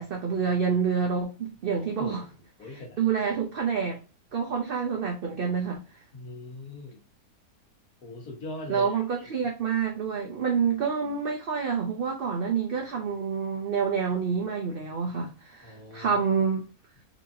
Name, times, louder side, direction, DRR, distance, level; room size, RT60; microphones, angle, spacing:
voice 1, 0.0-2.2 3.0-4.0 4.3-5.8 8.7-16.7, right 6 dB, 55° right, 0.6 m, -28 dB
voice 2, 1.8-2.3 2.6-3.1 6.1-7.0 8.0-9.3 15.6-16.2, left 2 dB, 85° left, 1.8 m, -41 dB
4.4 x 2.7 x 2.6 m
omnidirectional pair, 1.5 m